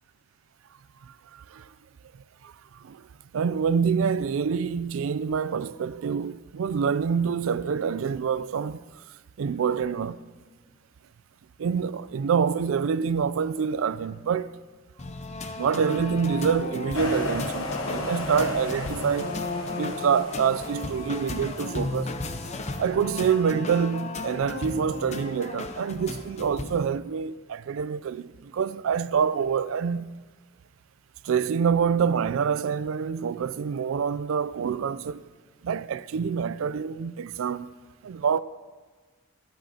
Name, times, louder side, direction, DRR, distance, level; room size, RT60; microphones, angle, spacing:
voice 1, 1.0-1.7 2.4-3.1 3.3-8.8 9.4-10.2 11.6-14.6 15.6-19.4 19.8-22.2 22.8-30.1 31.2-35.2 35.6-37.7 38.0-38.4, right 6 dB, 70° right, 0.3 m, -26 dB
sound 1, 15.0-26.9, left 3 dB, 30° left, 0.6 m, -35 dB
sound 2, 16.9-21.9, left 2 dB, 70° left, 1.0 m, -34 dB
15.0 x 11.0 x 2.8 m
head